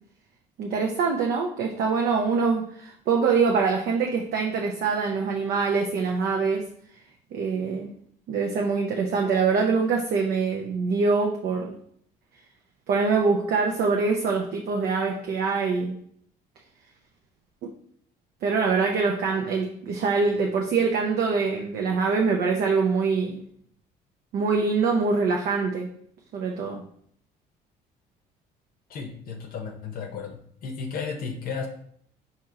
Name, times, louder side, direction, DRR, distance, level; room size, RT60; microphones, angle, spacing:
voice 1, 0.6-6.7 7.3-7.9 8.3-11.7 12.9-16.0 18.4-23.4 24.3-25.9 26.3-26.8, right 4 dB, 65° right, 1 dB, 0.6 m, -24 dB
voice 2, 28.9-31.7, left 5 dB, 60° left, 3 dB, 0.6 m, -34 dB
4.3 x 2.9 x 3.7 m, 0.65 s
cardioid pair, 110°, 17 cm